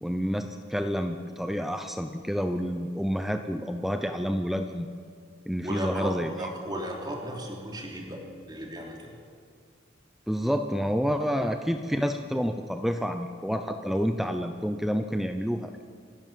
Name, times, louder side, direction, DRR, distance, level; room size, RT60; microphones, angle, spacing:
voice 1, 0.0-4.9 5.5-6.5 10.3-15.7, equal, ahead, 6 dB, 0.7 m, -29 dB
voice 2, 5.6-8.2 8.5-9.1, equal, 20° right, 0 dB, 3.2 m, -35 dB
29.0 x 12.5 x 7.6 m, 2.1 s
head